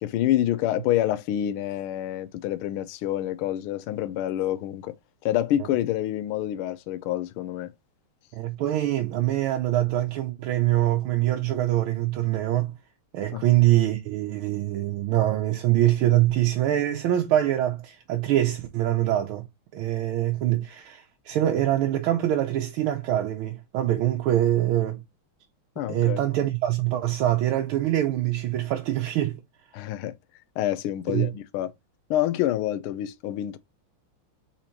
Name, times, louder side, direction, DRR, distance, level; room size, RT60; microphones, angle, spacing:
voice 1, 0.0-4.9 5.2-7.7 13.3-13.4 25.8-26.2 29.7-30.1 30.6-31.7 32.1-33.6, left 12 dB, 80° left, 1.5 m, -27 dB
voice 2, 8.4-12.8 13.1-19.5 19.7-25.0 25.9-29.4 31.1-31.3, right 13 dB, 75° right, 1.5 m, -24 dB
4.3 x 4.3 x 2.8 m
omnidirectional pair, 2.4 m